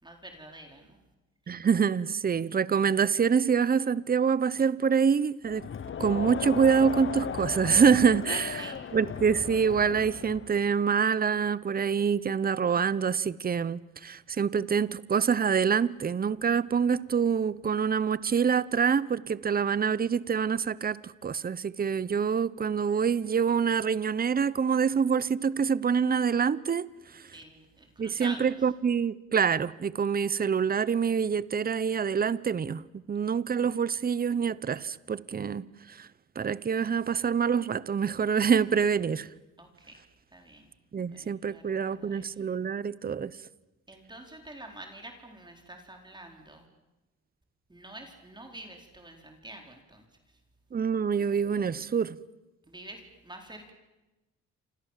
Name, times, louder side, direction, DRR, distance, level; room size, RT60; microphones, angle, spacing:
voice 1, 0.0-1.0 8.3-8.8 27.3-28.5 39.6-40.0 40.3-40.7 41.1-42.3 43.9-46.7 47.7-50.0 52.7-53.7, right 1 dB, 15° right, 4.4 m, -46 dB
voice 2, 1.5-5.7 6.0-8.6 8.9-27.3 28.0-36.1 36.4-39.3 40.9-43.4 50.7-52.2, right 6 dB, 30° right, 0.9 m, -26 dB
Crowd, 5.5-10.7, left 7 dB, 40° left, 1.0 m, -36 dB
29.0 x 26.5 x 7.5 m
cardioid pair, 90°, 30 cm